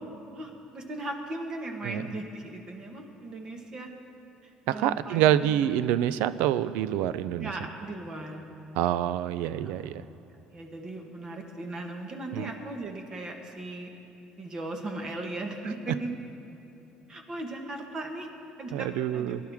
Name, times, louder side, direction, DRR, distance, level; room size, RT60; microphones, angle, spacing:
voice 1, 0.3-3.9 4.7-5.6 7.4-8.4 9.6-9.9 10.5-13.9 14.4-16.1 17.1-18.3 18.6-19.4, right 2 dB, 30° right, 3 dB, 1.3 m, -37 dB
voice 2, 4.7-7.5 8.8-10.0 12.3-12.5 18.7-19.4, right 11 dB, 90° right, 15 dB, 0.4 m, -26 dB
20.5 x 11.5 x 3.5 m, 2.9 s
cardioid pair, 155°, 2 cm